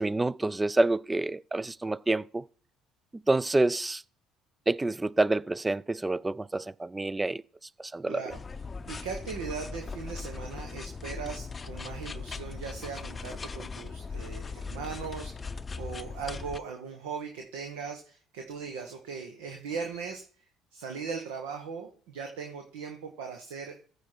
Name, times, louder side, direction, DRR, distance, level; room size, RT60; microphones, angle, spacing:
voice 1, 0.0-2.5 3.3-4.0 4.7-7.4 7.8-8.2, right 2 dB, 15° right, 0.4 m, -27 dB
voice 2, 8.1-8.4 8.9-20.2 20.7-23.8, right 5 dB, 75° right, 1.2 m, -39 dB
sound 1, 8.3-16.6, left 4 dB, 30° left, 0.6 m, -39 dB
14.5 x 5.0 x 4.4 m
hypercardioid pair, 55°, 0 cm